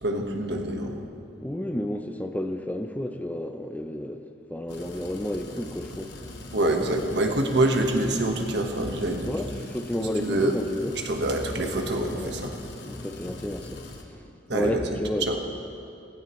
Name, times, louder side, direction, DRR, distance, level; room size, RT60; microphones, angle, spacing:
voice 1, 0.0-1.0 6.5-9.3 10.2-10.5 11.0-12.5 14.5-14.8 15.2-15.4, right 1 dB, 70° right, 3 dB, 1.4 m, -25 dB
voice 2, 1.4-4.2 4.5-6.1 9.2-11.0 12.1-12.3 12.8-13.8 14.1-15.4, left 1 dB, 10° left, 6 dB, 0.5 m, -31 dB
sound 1, 4.7-14.0, left 2 dB, 70° left, 1.3 m, -41 dB
16.5 x 16.0 x 3.1 m, 2.6 s
head